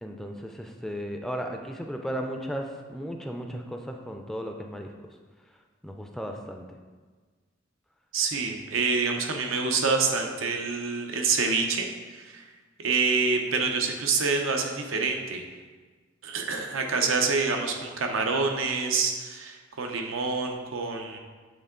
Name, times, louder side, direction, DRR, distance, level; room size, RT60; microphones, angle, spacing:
voice 1, 0.0-4.9 5.8-6.6, equal, ahead, 3 dB, 0.3 m, -35 dB
voice 2, 8.1-12.5 12.8-15.4 16.2-21.2, right 4 dB, 90° right, 3 dB, 0.7 m, -27 dB
8.0 x 3.7 x 3.7 m, 1.4 s
head